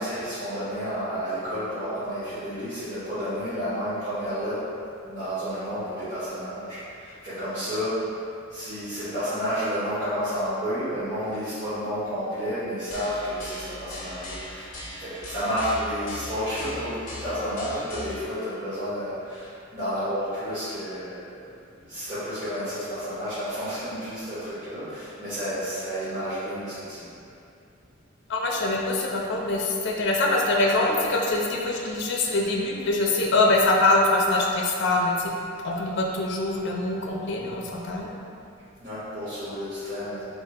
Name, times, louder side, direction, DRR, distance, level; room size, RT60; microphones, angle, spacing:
voice 1, 0.0-4.7 5.0-8.1 8.5-14.7 15.0-21.5 21.8-27.2 38.8-40.2, equal, 45° right, -17 dB, 1.4 m, -31 dB
sound 1, 12.9-18.2, left 1 dB, 45° left, 0.8 m, -39 dB
voice 2, 28.3-35.3 35.6-38.2, left 2 dB, 65° left, -1 dB, 0.5 m, -24 dB
4.4 x 2.8 x 3.3 m, 2.5 s
head